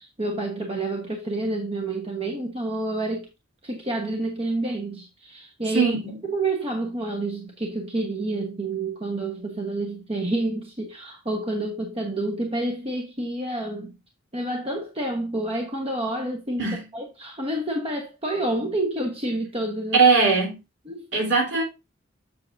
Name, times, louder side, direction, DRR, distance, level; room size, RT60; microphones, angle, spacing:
voice 1, 0.2-3.3 3.6-5.9 6.2-13.9 14.3-16.6 16.9-20.0 20.8-21.1, right 2 dB, 30° right, 1.1 m, -28 dB
voice 2, 5.7-6.1 16.6-16.8 19.9-20.6 21.1-21.6, right 4 dB, 65° right, 3.4 m, -20 dB
7.5 x 7.5 x 2.6 m
head